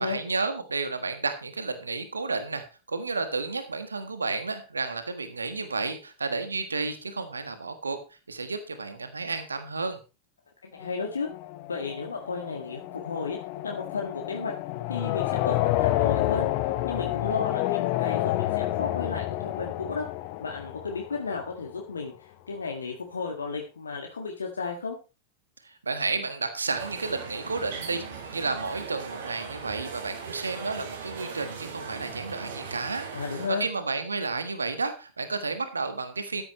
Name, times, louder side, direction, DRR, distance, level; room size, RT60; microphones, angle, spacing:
voice 1, 0.0-8.0 8.3-10.0 25.6-28.0 28.3-36.4, right 3 dB, 75° right, 9 dB, 1.4 m, -32 dB
voice 2, 10.7-11.3 11.7-13.4 13.6-14.5 14.9-16.5 16.8-20.1 20.4-25.0 33.1-33.7, left 4 dB, 75° left, 1 dB, 1.8 m, -33 dB
sound 1, 10.8-21.6, left 15 dB, 45° left, 0.9 m, -29 dB
sound 2, 26.7-33.5, right 5 dB, 60° right, 3.8 m, -39 dB
13.5 x 10.5 x 3.0 m, 0.30 s
figure-of-eight pair, 90°, 0 cm